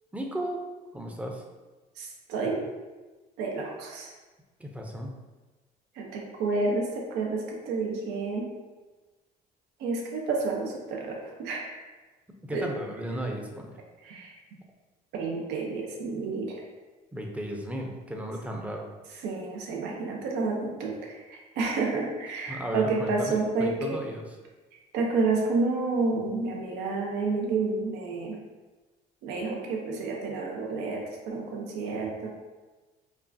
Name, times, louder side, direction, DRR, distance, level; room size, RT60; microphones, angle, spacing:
voice 1, 0.1-0.6 0.9-1.4 4.6-5.1 12.4-13.7 17.1-18.8 22.5-24.4, right 1 dB, 10° right, 1 dB, 0.5 m, -34 dB
voice 2, 2.0-2.6 3.4-4.1 6.0-8.5 9.8-11.7 12.5-12.7 14.0-14.3 15.1-16.6 19.2-24.0 24.9-28.3 29.2-32.3, right 3 dB, 90° right, -1 dB, 0.7 m, -30 dB
5.3 x 2.5 x 2.6 m, 1.2 s
cardioid pair, 110°, 17 cm